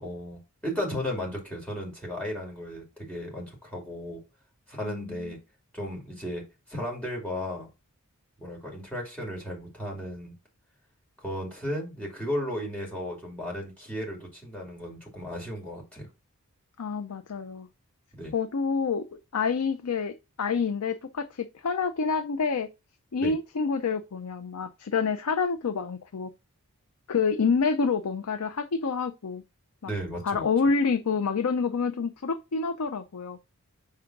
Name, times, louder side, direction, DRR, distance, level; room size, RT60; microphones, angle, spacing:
voice 1, 0.0-4.2 4.7-5.4 5.7-6.4 6.7-7.7 8.4-10.4 11.2-16.1 18.2-18.3 23.2-23.3 29.9-30.4, equal, 5° left, 2.5 m, -35 dB
voice 2, 4.8-5.1 16.8-17.7 18.3-22.7 23.1-26.3 27.1-29.4 29.8-29.9 30.2-33.4, left 5 dB, 85° left, 0.6 m, -28 dB
5.5 x 3.9 x 5.8 m
head